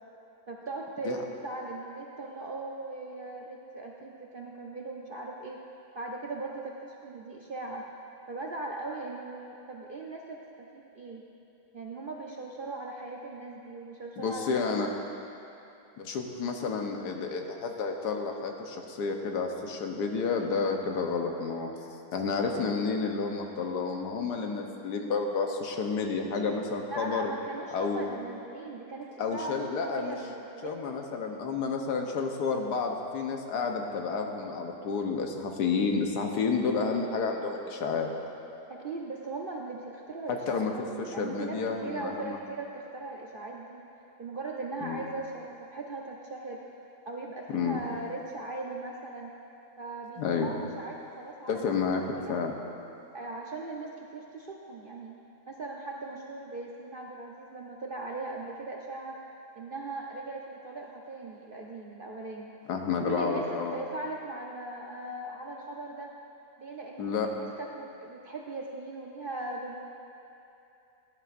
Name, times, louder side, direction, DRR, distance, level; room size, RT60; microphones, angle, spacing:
voice 1, 0.5-5.6 5.9-7.8 8.3-11.2 11.7-14.9 26.9-31.0 38.7-43.8 44.2-46.6 47.1-49.3 49.8-51.7 52.0-52.4 53.1-55.2 55.5-59.2 59.5-62.5 63.0-66.1 66.6-69.8, right 2 dB, 55° right, -2 dB, 0.6 m, -39 dB
voice 2, 14.2-14.9 16.0-21.7 22.1-27.3 27.7-28.0 29.2-30.2 30.6-38.1 40.3-40.7 41.2-42.4 44.8-45.0 47.5-47.8 50.2-50.5 51.5-52.0 52.3-52.5 62.7-63.8 67.0-67.3, left 5 dB, 85° left, 3 dB, 1.5 m, -30 dB
16.5 x 10.5 x 2.5 m, 2.8 s
omnidirectional pair, 1.7 m